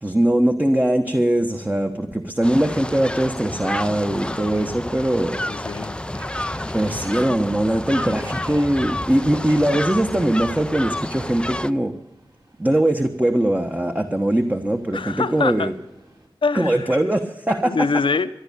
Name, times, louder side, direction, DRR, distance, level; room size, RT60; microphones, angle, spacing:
voice 1, 0.0-5.4 6.7-11.9 12.6-15.7 16.5-17.8, right 1 dB, 15° right, 1.2 m, -21 dB
sound 1, 2.4-11.7, left 1 dB, 10° left, 0.5 m, -29 dB
Subway metro underground, 3.2-16.3, right 1 dB, 45° right, 4.1 m, -49 dB
voice 2, 5.3-6.0 14.9-15.7 16.4-17.0 17.6-18.3, left 4 dB, 65° left, 0.8 m, -24 dB
13.5 x 10.5 x 8.5 m
cardioid pair, 45°, 9 cm